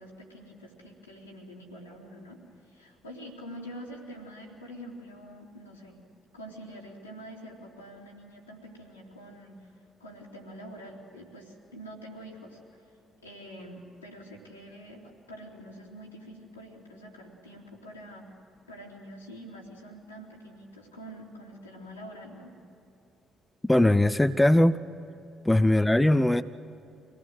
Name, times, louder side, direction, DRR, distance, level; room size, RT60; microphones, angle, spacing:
voice 1, 0.0-6.0 6.3-9.7 10.0-13.0 13.2-18.3 18.7-22.5, equal, 85° left, -3 dB, 2.9 m, -46 dB
voice 2, 23.6-24.8 25.5-26.4, left 1 dB, 10° left, 11 dB, 0.7 m, -20 dB
25.5 x 18.0 x 7.8 m, 2.8 s
figure-of-eight pair, 45°, 0 cm